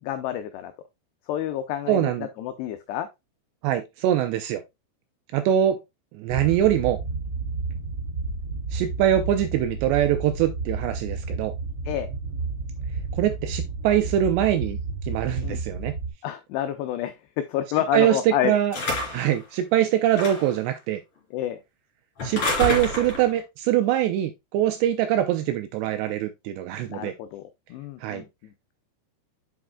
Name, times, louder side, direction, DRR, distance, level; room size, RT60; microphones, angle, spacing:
voice 1, 0.0-0.7 1.3-2.1 2.4-3.1 11.9-12.1 15.4-15.6 16.2-17.1 17.5-18.6 21.3-21.6 26.9-28.5, left 11 dB, 90° left, 2.3 m, -29 dB
voice 2, 1.9-2.3 3.6-4.6 5.3-5.8 6.1-7.0 8.7-11.5 13.2-14.8 15.1-15.9 17.9-18.8 19.1-21.0 22.2-27.1 28.0-28.2, right 11 dB, 80° right, 2.6 m, -23 dB
sound 1, 6.3-16.1, right 3 dB, 30° right, 1.6 m, -31 dB
sound 2, 18.7-19.3 20.1-20.6 22.2-23.3, left 1 dB, 35° left, 3.0 m, -28 dB
7.9 x 6.2 x 2.3 m
omnidirectional pair, 5.5 m